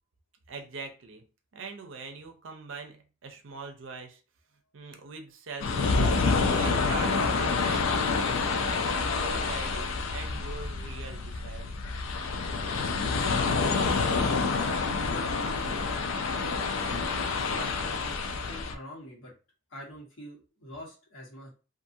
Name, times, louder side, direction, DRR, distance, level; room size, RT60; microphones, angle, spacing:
voice 1, 0.5-1.2 1.5-4.2 4.7-8.8 9.1-11.7, right 4 dB, 70° right, 5 dB, 0.6 m, -42 dB
sound 1, 5.6-18.7, left 4 dB, 85° left, 0.4 m, -28 dB
voice 2, 12.7-16.6 17.3-19.3 19.7-21.6, equal, 65° left, -3 dB, 1.2 m, -46 dB
2.5 x 2.5 x 2.6 m, 0.34 s
head